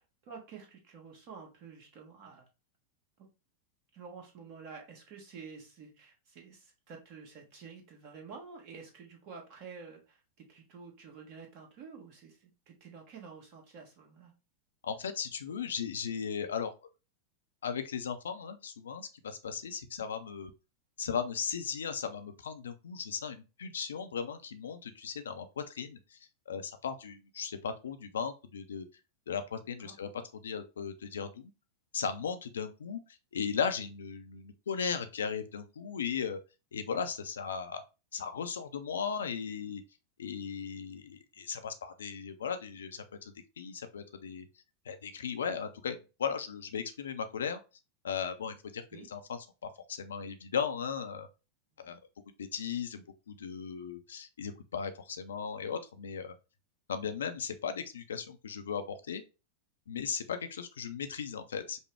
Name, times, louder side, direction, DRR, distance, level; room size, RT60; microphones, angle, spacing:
voice 1, 0.0-2.4 3.2-3.3 3.9-14.3 29.6-29.9 48.9-49.1, right 5 dB, 45° right, 1 dB, 1.4 m, -50 dB
voice 2, 14.8-16.7 17.6-20.5 21.0-26.2 26.5-28.9 29.3-30.1 30.4-31.5 31.9-33.0 33.3-36.4 36.7-37.8 38.1-39.8 40.2-44.5 44.9-47.6 48.0-49.4 49.9-51.3 51.8-52.0 52.4-56.3 56.9-59.2 59.9-61.8, left 6 dB, 65° left, 8 dB, 0.5 m, -37 dB
5.2 x 2.2 x 3.4 m, 0.29 s
figure-of-eight pair, 90°, 0 cm